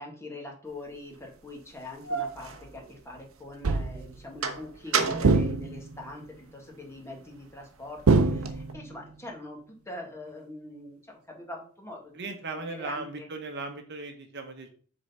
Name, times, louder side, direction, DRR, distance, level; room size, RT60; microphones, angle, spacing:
voice 1, 0.0-9.6 9.8-12.3 12.7-13.3, left 1 dB, 15° left, 0 dB, 1.7 m, -43 dB
sound 1, 0.9-1.0 1.7-3.5 3.9-6.5 7.0-8.7, right 5 dB, 75° right, 1.0 m, -34 dB
sound 2, 3.6-4.2 5.2-6.0 8.1-9.0, right 3 dB, 90° right, 0.5 m, -24 dB
voice 2, 12.1-14.7, right 3 dB, 55° right, 5 dB, 1.1 m, -37 dB
6.8 x 4.0 x 5.5 m, 0.43 s
head